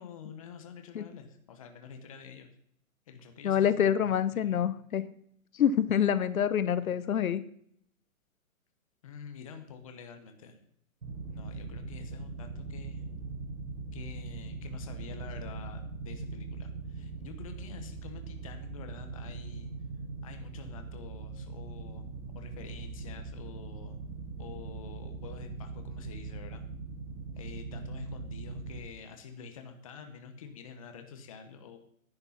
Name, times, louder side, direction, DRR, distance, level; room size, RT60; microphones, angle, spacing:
voice 1, 0.0-2.5 3.1-3.8 4.3-4.8 6.9-7.0 9.0-10.6 11.3-13.1 13.9-19.7 20.2-22.1 22.3-24.0 24.4-26.6 27.3-31.8, left 6 dB, 25° left, 6 dB, 1.0 m, -48 dB
voice 2, 3.4-5.1 5.5-7.4, left 9 dB, 80° left, 14 dB, 0.9 m, -26 dB
sound 1, 11.0-28.8, right 4 dB, 75° right, 5.6 m, -41 dB
10.5 x 8.3 x 5.7 m, 0.68 s
hypercardioid pair, 175°, 42 cm